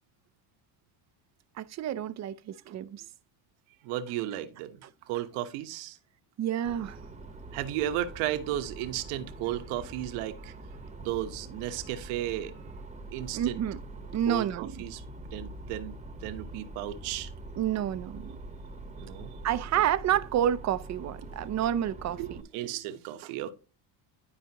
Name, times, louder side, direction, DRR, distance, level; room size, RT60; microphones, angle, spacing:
voice 1, 1.6-3.1 4.8-4.9 6.4-7.0 13.3-13.8 14.1-14.7 17.6-18.3 19.4-22.4, right 10 dB, 35° right, 0.5 m, -29 dB
voice 2, 3.8-4.8 5.1-6.0 7.5-10.5 11.0-12.5 13.1-13.6 14.3-15.0 15.3-17.3 19.0-19.3 22.2-23.5, right 13 dB, 80° right, 1.3 m, -34 dB
sound 1, 6.6-22.4, right 2 dB, 15° right, 1.0 m, -44 dB
11.5 x 5.0 x 2.9 m
cardioid pair, 130°, 50 cm